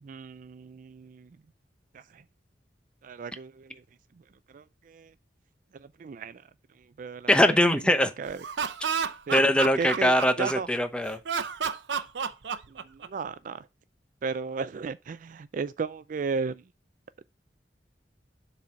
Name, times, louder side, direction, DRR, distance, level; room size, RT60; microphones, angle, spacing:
voice 1, 0.0-1.3 1.9-2.2 3.0-3.8 4.5-5.1 6.0-6.4 7.0-7.5 8.2-8.4 9.3-9.5 9.8-10.1 10.4-10.7 12.7-13.6 14.2-16.6, right 5 dB, 50° right, 0.3 m, -35 dB
voice 2, 7.3-8.1 9.3-11.2, left 1 dB, 5° left, 0.7 m, -22 dB
Laughter, 8.3-10.8 11.2-13.3, right 6 dB, 85° right, 0.6 m, -31 dB
7.4 x 4.0 x 5.6 m
head